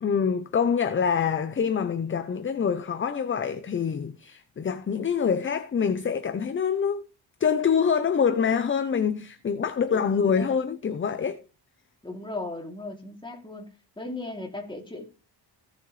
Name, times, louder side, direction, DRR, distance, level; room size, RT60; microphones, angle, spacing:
voice 1, 0.0-7.0 7.4-11.4, left 6 dB, 25° left, 0.6 m, -25 dB
voice 2, 9.9-10.5 12.0-13.7 14.0-15.0, left 2 dB, 10° left, 2.8 m, -37 dB
16.5 x 7.1 x 3.3 m
cardioid pair, 135°, 45 cm